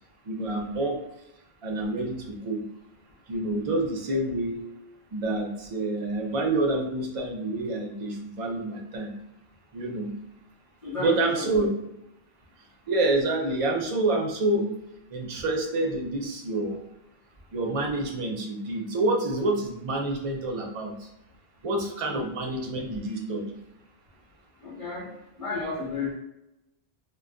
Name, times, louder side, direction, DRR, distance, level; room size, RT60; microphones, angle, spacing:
voice 1, 0.2-1.0 1.6-2.6 3.3-4.6 5.1-9.1 9.7-10.1 11.0-11.7 12.9-14.7 15.1-16.8 17.5-21.1 21.6-23.6, right 2 dB, 45° right, 1 dB, 0.4 m, -27 dB
voice 2, 10.8-11.5 22.1-22.2 24.6-25.1 25.4-26.1, left 3 dB, 35° left, -7 dB, 0.8 m, -32 dB
2.2 x 2.2 x 3.6 m, 0.86 s
omnidirectional pair, 1.1 m